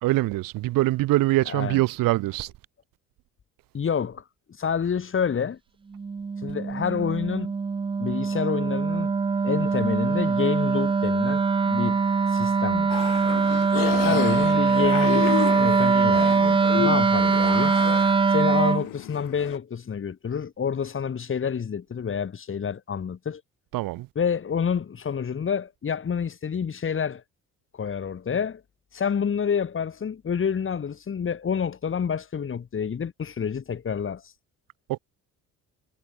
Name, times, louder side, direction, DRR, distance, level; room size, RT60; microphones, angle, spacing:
voice 1, 0.0-2.5 23.7-24.1 34.9-35.0, right 18 dB, 80° right, 1.0 m, -23 dB
voice 2, 1.5-1.8 3.7-4.2 4.6-5.6 6.4-7.5 8.0-9.1 9.4-12.0 12.3-12.9 14.0-17.7 18.3-23.4 24.2-27.2 27.7-28.6 28.9-34.2, left 7 dB, 40° left, 2.7 m, -28 dB
Wind instrument woodwind instrument, 5.9-18.9, right 5 dB, 15° right, 0.4 m, -22 dB
sound 1, 12.9-19.6, left 18 dB, 80° left, 0.8 m, -32 dB
cardioid pair, 105°, 33 cm